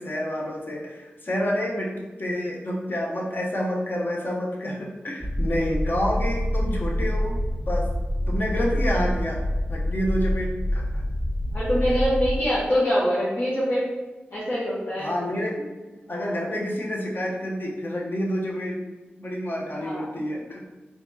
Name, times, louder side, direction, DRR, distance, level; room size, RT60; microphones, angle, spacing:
voice 1, 0.0-7.4 7.7-7.9 8.3-9.4 9.7-10.8 15.0-15.7 16.1-18.8 19.2-20.6, equal, 55° left, -3 dB, 0.9 m, -28 dB
sound 1, 5.2-12.4, equal, 5° right, 0.7 m, -26 dB
voice 2, 11.5-13.8 14.3-15.2 19.7-20.1, equal, 75° left, -11 dB, 1.1 m, -24 dB
4.2 x 2.9 x 2.8 m, 1.2 s
cardioid pair, 50°, 4 cm